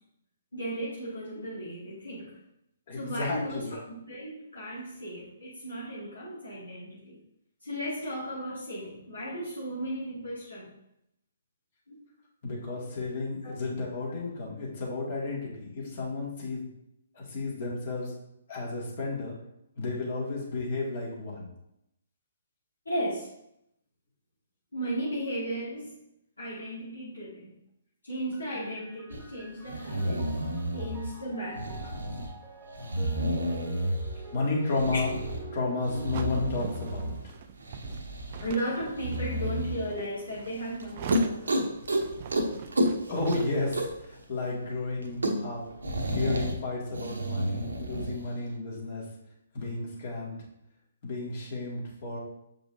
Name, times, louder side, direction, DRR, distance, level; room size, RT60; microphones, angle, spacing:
voice 1, 0.5-2.3 2.9-7.2 7.6-10.7 11.9-12.0 13.4-13.5 22.9-23.3 24.7-26.0 26.4-27.5 28.0-30.3 30.7-32.0 38.4-41.6, right 1 dB, 80° left, -9 dB, 2.3 m, -35 dB
voice 2, 2.9-3.7 12.4-16.7 17.1-18.1 18.5-19.4 19.8-21.5 34.3-35.2 35.5-37.3 43.1-45.6 46.1-49.1 49.5-50.4 51.0-52.2, left 3 dB, 50° left, -3 dB, 2.1 m, -32 dB
sound 1, 28.3-37.2, right 3 dB, 15° right, 1.1 m, -45 dB
sound 2, 29.1-29.2 29.6-31.1 31.5-32.3 32.7-34.2 34.7-35.4 35.8-37.2 37.6-38.5 39.0-39.8 40.3-40.5 40.8-40.9 41.1-42.0 42.3-42.5 42.7-44.0 44.4-44.5 44.7-44.8 45.0-46.5 46.9-48.2, equal, 75° right, 0.9 m, -30 dB
sound 3, 36.1-44.0, right 7 dB, 40° right, 0.4 m, -43 dB
7.0 x 5.3 x 2.7 m, 0.81 s
figure-of-eight pair, 130°, 0 cm